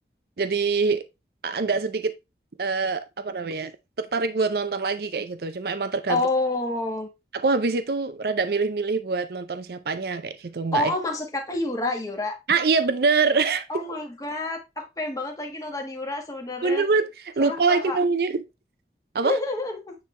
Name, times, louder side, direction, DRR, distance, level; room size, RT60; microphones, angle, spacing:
voice 1, 0.4-1.0 1.4-2.2 2.6-3.7 4.0-6.2 7.3-10.9 12.5-13.6 16.6-18.4 19.1-19.4, right 4 dB, 60° right, 0.5 m, -24 dB
voice 2, 6.1-7.1 10.7-12.4 13.7-16.8 17.4-18.0 19.2-20.0, left 2 dB, 20° left, 1.3 m, -28 dB
9.4 x 3.3 x 3.2 m
head